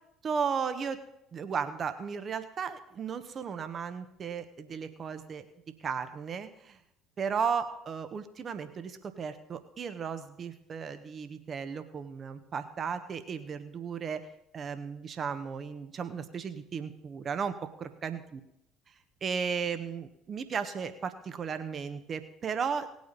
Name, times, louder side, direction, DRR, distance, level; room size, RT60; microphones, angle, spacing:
voice 1, 0.2-1.0 1.3-5.5 5.8-6.8 7.2-14.3 14.5-18.4 19.2-23.0, right 6 dB, 40° right, 10 dB, 1.3 m, -35 dB
18.5 x 8.5 x 4.1 m, 0.80 s
figure-of-eight pair, 55°, 0 cm